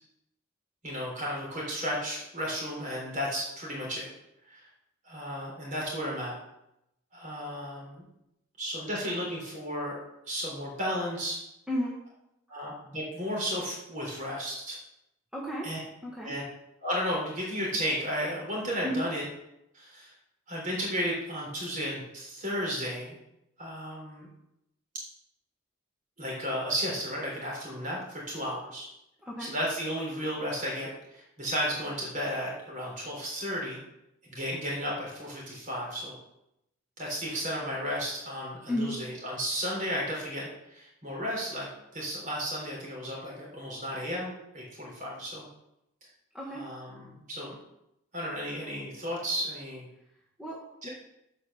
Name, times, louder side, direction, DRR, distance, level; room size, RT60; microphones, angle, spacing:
voice 1, 0.8-4.1 4.5-4.6 5.0-6.4 7.1-8.1 8.6-10.0 10.3-11.4 12.5-14.8 15.6-15.8 16.2-16.4 16.8-19.2 19.7-20.1 20.5-23.2 23.6-24.3 26.2-28.9 29.4-33.8 34.3-36.1 37.0-45.5 46.5-47.5 48.1-49.8 50.8-50.9, equal, 35° right, -3 dB, 3.8 m, -33 dB
voice 2, 11.7-12.0 15.3-15.7 16.0-16.3 18.8-19.0 29.2-29.5 38.7-39.0 46.3-46.7 50.4-50.9, equal, 5° right, -5 dB, 1.2 m, -33 dB
8.3 x 5.1 x 6.9 m, 0.84 s
head